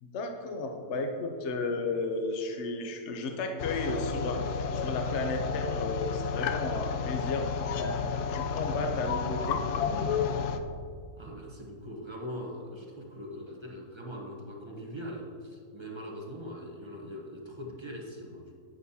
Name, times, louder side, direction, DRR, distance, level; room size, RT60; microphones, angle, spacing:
voice 1, 0.0-4.4 4.7-8.0 8.3-9.6, left 2 dB, 55° left, 4 dB, 0.9 m, -33 dB
sound 1, 3.6-10.6, left 6 dB, 90° left, 1.1 m, -31 dB
voice 2, 11.2-18.5, equal, 20° right, -1 dB, 0.8 m, -41 dB
10.0 x 9.2 x 2.8 m, 2.4 s
omnidirectional pair, 1.6 m